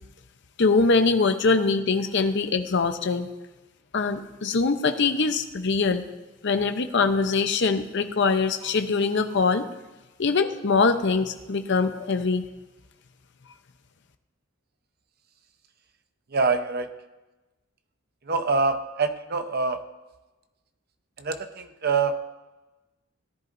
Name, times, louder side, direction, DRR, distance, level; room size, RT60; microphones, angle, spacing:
voice 1, 0.6-3.3 3.9-6.0 6.4-9.6 10.2-12.4, left 4 dB, 60° left, 8 dB, 0.8 m, -23 dB
voice 2, 16.3-16.9 18.3-19.8 21.2-22.1, right 4 dB, 50° right, 8 dB, 0.9 m, -25 dB
17.5 x 10.5 x 2.6 m, 1.1 s
head